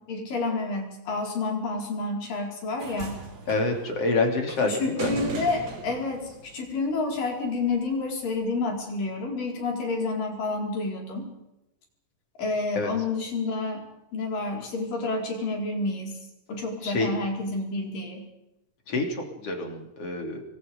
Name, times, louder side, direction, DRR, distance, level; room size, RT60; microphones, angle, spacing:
voice 1, 0.1-3.2 4.6-11.3 12.4-16.2 16.5-18.3, left 3 dB, 55° left, 0 dB, 6.0 m, -29 dB
sound 1, 2.8-7.2 8.3-8.4, right 3 dB, 35° right, 1.6 m, -38 dB
voice 2, 3.5-5.1 12.8-12.9 16.8-17.1 18.9-20.4, left 3 dB, 40° left, 2 dB, 3.9 m, -27 dB
27.5 x 21.5 x 5.4 m, 0.92 s
omnidirectional pair, 4.8 m